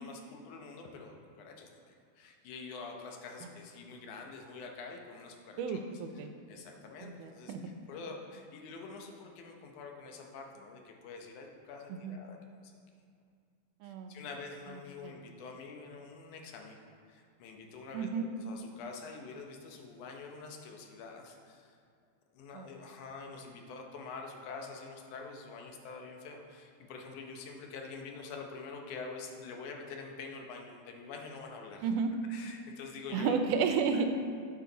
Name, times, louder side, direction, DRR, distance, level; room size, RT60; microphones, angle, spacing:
voice 1, 0.0-5.8 6.5-7.5 7.9-12.7 13.8-21.8 22.3-31.9 32.3-33.4, left 4 dB, 80° left, 2 dB, 2.4 m, -46 dB
voice 2, 5.6-6.3 7.0-7.6 11.9-12.2 13.8-14.2 15.0-15.2 17.9-18.3 22.5-22.7 31.8-32.1 33.1-34.1, right 5 dB, 85° right, 7 dB, 2.2 m, -32 dB
11.5 x 7.2 x 4.0 m, 2.2 s
omnidirectional pair, 3.6 m